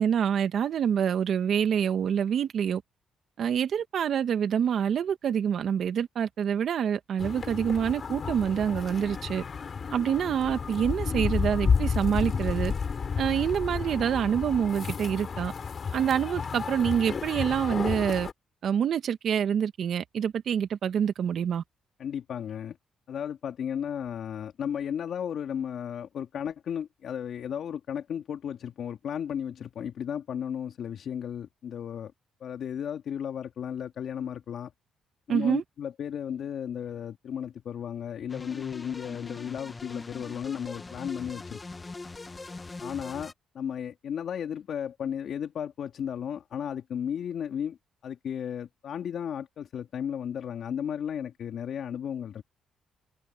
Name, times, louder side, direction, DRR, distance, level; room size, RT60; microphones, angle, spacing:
voice 1, 0.0-2.8 3.4-9.4 9.9-12.7 13.2-15.5 15.9-18.3 18.6-21.6 35.3-35.6, right 8 dB, 65° right, 1.6 m, -26 dB
sound 1, 7.2-18.3, left 5 dB, 45° left, 3.5 m, -31 dB
voice 2, 22.0-22.8 23.1-32.1 32.4-34.7 35.3-41.6 42.8-47.8 48.0-52.4, left 8 dB, 65° left, 2.5 m, -34 dB
sound 2, 38.3-43.3, left 3 dB, 25° left, 1.6 m, -41 dB
cardioid pair, 90°, 0 cm